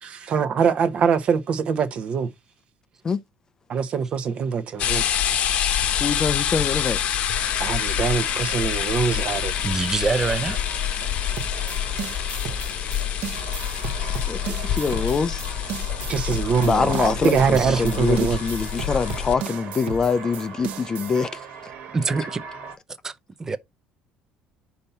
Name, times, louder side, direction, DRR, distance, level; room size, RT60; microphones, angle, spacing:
voice 1, 0.0-2.3 3.7-5.1 7.6-9.5 16.1-18.4, right 6 dB, 40° right, 0.9 m, -23 dB
sound 1, 4.8-19.3, left 10 dB, 50° left, 0.9 m, -26 dB
voice 2, 5.8-7.0 14.3-15.6 16.6-21.4, left 5 dB, 25° left, 0.5 m, -24 dB
sound 2, 7.3-22.8, right 6 dB, 80° right, 2.2 m, -40 dB
voice 3, 9.6-10.6 17.5-17.8 21.9-22.5 23.0-23.1 23.4-23.6, right 4 dB, 20° right, 0.6 m, -25 dB
sound 3, 11.4-21.2, right 5 dB, 60° right, 1.1 m, -35 dB
5.3 x 4.2 x 5.6 m
cardioid pair, 150°, 3 cm